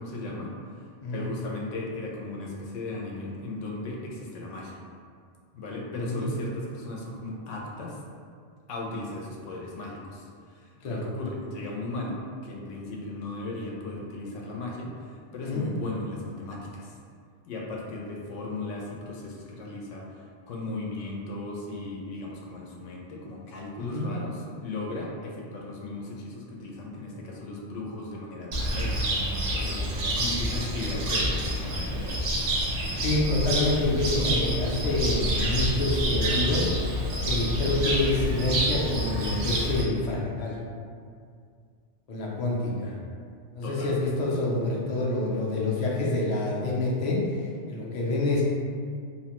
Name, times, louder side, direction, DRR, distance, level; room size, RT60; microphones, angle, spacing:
voice 1, 0.0-0.8 1.1-4.8 5.5-8.0 8.7-12.2 12.4-17.0 17.5-32.2 43.6-43.9, left 2 dB, 90° left, -2 dB, 0.9 m, -36 dB
voice 2, 5.9-6.3 10.8-11.1 15.4-15.7 23.8-24.1 33.0-36.7 37.3-40.6 42.1-42.9 43.5-47.2 47.7-48.4, left 2 dB, 50° left, -4 dB, 0.5 m, -27 dB
Cricket, 28.5-39.8, right 1 dB, 85° right, 0.9 m, -28 dB
2.9 x 2.1 x 2.9 m, 2.2 s
omnidirectional pair, 1.2 m